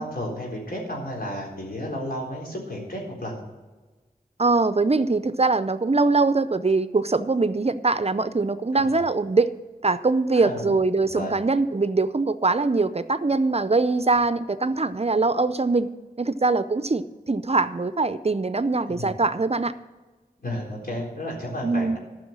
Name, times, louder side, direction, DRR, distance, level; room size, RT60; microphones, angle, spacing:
voice 1, 0.0-3.4 8.7-9.0 10.3-10.7 11.1-11.3 18.9-19.1 20.4-22.0, equal, 65° left, -2 dB, 4.0 m, -32 dB
voice 2, 4.4-9.5 9.8-15.9 16.2-19.7 21.6-22.0, right 3 dB, 40° right, 13 dB, 0.5 m, -22 dB
13.5 x 6.2 x 7.3 m, 1.3 s
wide cardioid pair, 55°, 16 cm